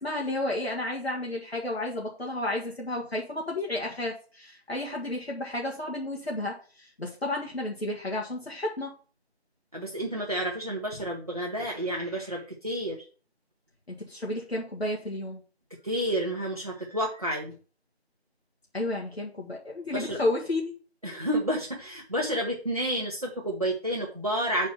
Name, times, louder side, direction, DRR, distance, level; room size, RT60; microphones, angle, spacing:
voice 1, 0.0-8.9 13.9-15.4 18.7-20.7, left 1 dB, 70° left, -2 dB, 1.9 m, -32 dB
voice 2, 9.7-13.1 15.8-17.5 19.9-20.2 21.0-24.7, right 1 dB, 35° right, -1 dB, 0.9 m, -30 dB
5.6 x 4.3 x 6.1 m, 0.38 s
figure-of-eight pair, 170°, 33 cm